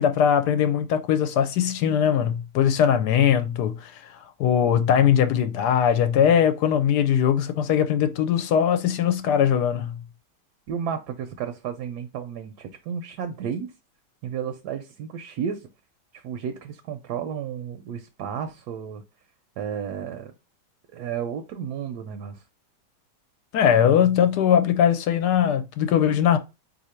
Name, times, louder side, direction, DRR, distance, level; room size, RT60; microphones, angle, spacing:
voice 1, 0.0-3.9 4.4-10.0 23.5-26.4, left 9 dB, 75° left, 1.1 m, -20 dB
voice 2, 10.7-13.7 14.2-15.7 16.1-19.0 19.6-20.3 20.9-22.4, right 7 dB, 75° right, 1.1 m, -32 dB
4.1 x 2.8 x 4.2 m
omnidirectional pair, 1.9 m